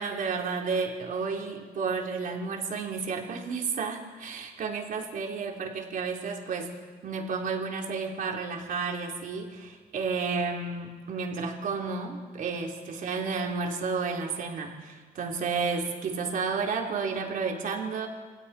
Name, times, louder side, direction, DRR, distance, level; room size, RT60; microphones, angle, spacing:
voice 1, 0.0-6.7 7.0-18.1, right 5 dB, 55° right, 1 dB, 3.5 m, -31 dB
28.0 x 20.5 x 4.9 m, 1.5 s
cardioid pair, 110°, 17 cm